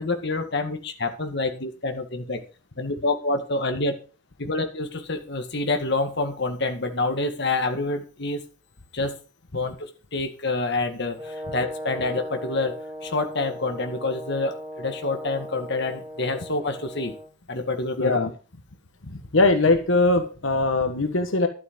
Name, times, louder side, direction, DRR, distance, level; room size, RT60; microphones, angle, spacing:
voice 1, 0.0-2.4 2.8-3.9 4.4-8.4 8.9-9.2 9.5-12.8 13.0-17.1 17.5-18.2, left 2 dB, 60° left, 6 dB, 2.0 m, -27 dB
Brass instrument, 11.2-17.3, equal, 20° right, 5.7 m, -37 dB
voice 2, 18.0-18.3 19.1-21.5, left 2 dB, 85° left, 7 dB, 1.5 m, -21 dB
12.0 x 8.5 x 5.3 m, 0.36 s
head